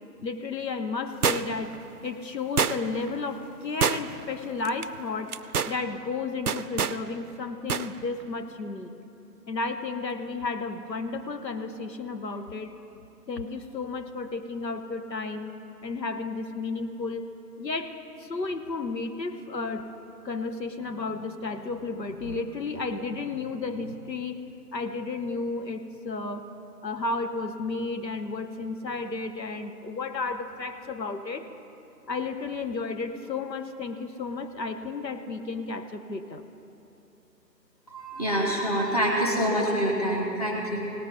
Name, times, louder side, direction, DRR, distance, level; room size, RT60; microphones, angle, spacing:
voice 1, 0.2-1.8 2.0-5.4 5.7-8.9 9.5-12.7 13.3-15.5 15.8-17.3 17.6-19.9 20.2-24.4 24.7-26.5 26.8-31.4 32.1-36.4, left 3 dB, 80° left, 7 dB, 1.1 m, -32 dB
sound 1, 1.2-1.7 2.6-3.1 3.8-4.3 4.7-4.9 5.3-5.8 6.5-7.0 7.7-7.9 8.2-8.3, right 6 dB, 65° right, 0.5 m, -26 dB
voice 2, 37.9-40.8, equal, 25° left, -2 dB, 1.3 m, -26 dB
18.0 x 7.0 x 5.3 m, 2.9 s
figure-of-eight pair, 170°, 50 cm